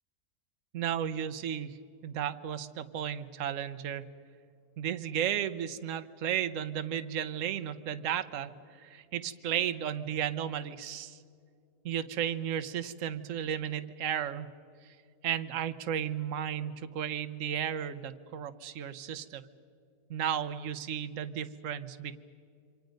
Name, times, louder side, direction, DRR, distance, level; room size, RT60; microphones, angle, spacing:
voice 1, 0.7-4.1 4.8-8.5 8.8-11.2 11.8-14.5 15.2-19.4 20.1-22.2, right 9 dB, 60° right, 10 dB, 1.2 m, -34 dB
27.5 x 25.5 x 5.3 m, 2.3 s
omnidirectional pair, 1.7 m